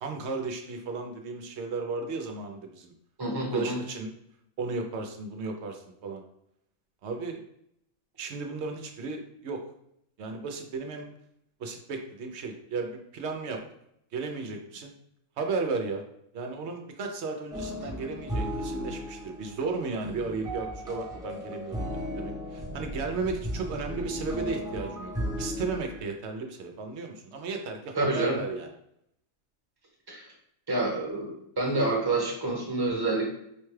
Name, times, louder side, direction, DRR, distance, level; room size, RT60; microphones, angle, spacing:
voice 1, 0.0-2.9 3.5-4.1 4.6-6.2 7.0-7.4 8.2-9.6 10.2-11.1 11.6-13.6 14.1-14.9 15.4-16.0 16.3-25.1 25.4-28.7, right 4 dB, 65° right, 4 dB, 0.7 m, -34 dB
voice 2, 3.2-3.8 27.9-28.4 30.1-30.3 30.7-31.3 31.6-33.3, right 2 dB, 20° right, -1 dB, 0.9 m, -27 dB
sound 1, 17.5-26.0, equal, 5° right, 0.5 m, -35 dB
5.0 x 2.2 x 3.2 m, 0.74 s
omnidirectional pair, 1.5 m